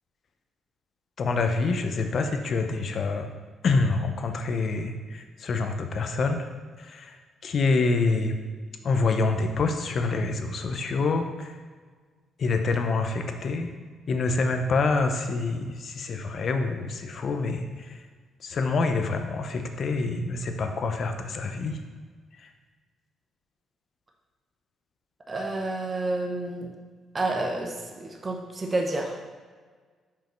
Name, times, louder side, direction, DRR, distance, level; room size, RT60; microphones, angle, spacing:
voice 1, 1.2-3.3 3.6-6.5 6.8-8.4 8.8-11.6 12.4-13.7 14.1-18.0 18.4-21.8 22.4-22.5, left 3 dB, 55° left, 6 dB, 0.7 m, -26 dB
voice 2, 25.3-26.7 27.1-29.1, right 2 dB, 30° right, 1 dB, 0.8 m, -29 dB
5.5 x 5.2 x 4.5 m, 1.5 s
cardioid pair, 90°, 0 cm